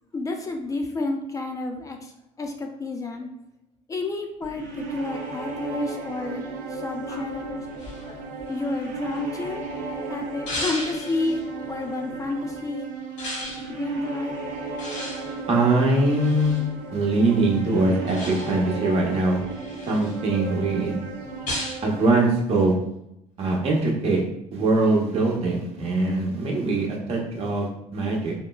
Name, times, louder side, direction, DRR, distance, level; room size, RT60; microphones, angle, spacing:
voice 1, 0.1-3.3 3.9-7.6 8.5-9.6 10.1-11.4 11.7-12.9 13.7-14.3, left 2 dB, 25° left, 3 dB, 0.4 m, -30 dB
sound 1, 4.4-22.1, right 3 dB, 80° right, 0.5 m, -35 dB
sound 2, 7.1-9.7 10.5-11.4 13.2-13.7 14.8-16.7 18.1-18.7 19.2-20.2 21.5-21.9, left 1 dB, 85° left, 1.2 m, -35 dB
voice 2, 15.5-16.6 16.9-19.4 19.8-21.0 21.8-22.7 23.4-24.2 24.5-28.3, right 2 dB, 50° right, -1 dB, 0.8 m, -22 dB
3.7 x 2.0 x 2.2 m, 0.81 s
cardioid pair, 95°, 13 cm